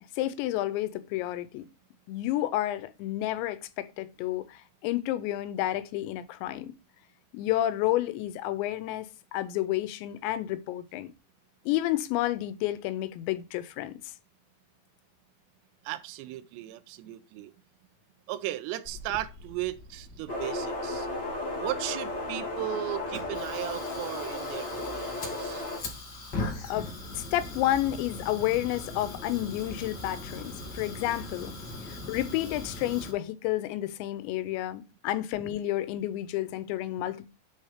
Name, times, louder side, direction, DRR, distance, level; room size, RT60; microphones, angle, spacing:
voice 1, 0.2-1.7 2.1-6.7 7.3-9.1 9.3-11.1 11.7-14.1 26.7-31.5 31.9-37.3, left 14 dB, 90° left, 3.0 m, -30 dB
voice 2, 15.8-17.5 18.3-21.1 21.6-25.6, right 14 dB, 85° right, 2.9 m, -36 dB
Fire, 18.8-33.1, left 2 dB, 50° left, 1.2 m, -41 dB
sound 1, 20.3-25.8, left 2 dB, 20° left, 1.0 m, -34 dB
8.2 x 4.3 x 4.8 m
omnidirectional pair, 5.1 m